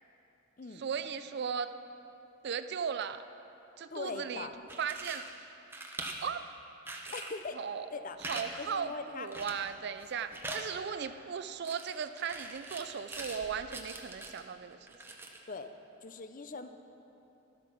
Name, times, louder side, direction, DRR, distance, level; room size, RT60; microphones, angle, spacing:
voice 1, 0.7-1.7 2.4-3.2 3.8-5.6 6.2-6.4 7.0-7.3 7.5-7.9 8.3-14.8, right 7 dB, 55° right, 11 dB, 0.4 m, -37 dB
voice 2, 3.9-4.5 7.1-7.6 7.9-8.2 8.6-9.3 15.5-15.7 16.0-16.7, left 4 dB, 40° left, 9 dB, 0.5 m, -41 dB
sound 1, 4.5-5.3 5.7-6.3 6.9-7.4 8.2-8.5 8.7-8.8 9.3-9.7 10.0-10.7 11.6-13.4 13.7-14.4 14.9-15.4, right 2 dB, 10° right, 0.8 m, -42 dB
Slam, 12.3-14.9, left 1 dB, 65° left, 1.2 m, -61 dB
12.5 x 8.3 x 6.1 m, 2.9 s
head